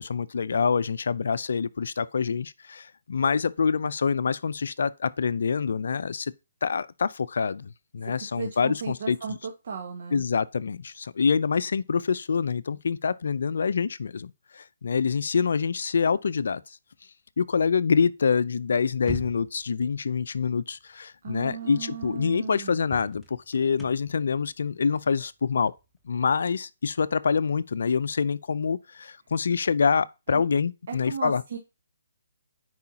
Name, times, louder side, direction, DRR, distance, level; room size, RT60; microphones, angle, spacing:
voice 1, 0.0-6.3 6.6-9.4 10.1-16.6 17.4-25.7 26.1-31.4, left 5 dB, 65° left, 0.5 m, -26 dB
voice 2, 8.4-10.2 21.2-22.8 30.3-30.4 30.9-31.6, right 6 dB, 55° right, 1.6 m, -36 dB
sound 1, 19.0-19.7 21.5-21.6 22.0-22.1 22.8-26.4, right 2 dB, ahead, 1.0 m, -42 dB
9.5 x 4.8 x 2.8 m
hypercardioid pair, 150°, 0 cm